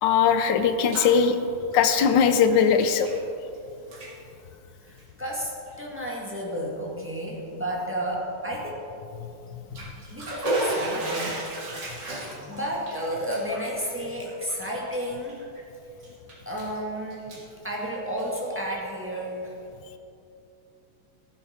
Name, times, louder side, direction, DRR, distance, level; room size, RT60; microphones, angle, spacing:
voice 1, 0.0-1.4 1.7-3.1, left 7 dB, 70° left, 9 dB, 1.3 m, -20 dB
Bathtub (filling or washing), 0.6-1.2 1.5-3.6 3.8-4.1 4.9-5.0 5.7-5.8 6.2-6.3 9.5-15.6 16.0-16.8 17.1-18.4, right 1 dB, 55° right, 2.7 m, -34 dB
voice 2, 4.8-8.8 10.1-11.4 11.9-15.4 16.4-17.4 17.6-19.5, equal, 5° right, -4 dB, 1.6 m, -32 dB
14.0 x 8.5 x 4.3 m, 2.7 s
omnidirectional pair, 2.3 m